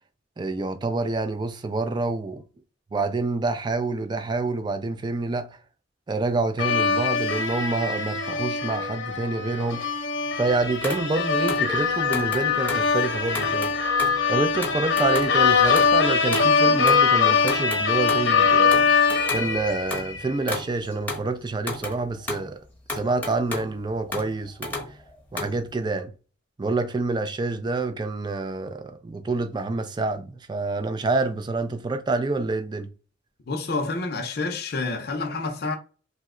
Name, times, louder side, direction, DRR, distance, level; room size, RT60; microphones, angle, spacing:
voice 1, 0.4-2.4 2.9-5.5 6.1-9.8 10.3-13.7 14.3-18.8 19.3-22.6 22.9-24.8 25.3-26.1 26.6-32.9, right 3 dB, 25° right, 0.3 m, -27 dB
sound 1, 6.6-20.3, left 5 dB, 90° left, 0.8 m, -22 dB
sound 2, 10.8-12.9 13.3-16.6 16.9-17.1 17.4-18.3 18.7-20.1 20.5-21.3 21.6-22.5 22.9-23.7 24.1-25.6, left 2 dB, 10° left, 0.8 m, -33 dB
voice 2, 33.5-35.8, left 3 dB, 55° left, 0.5 m, -28 dB
2.8 x 2.1 x 3.6 m
head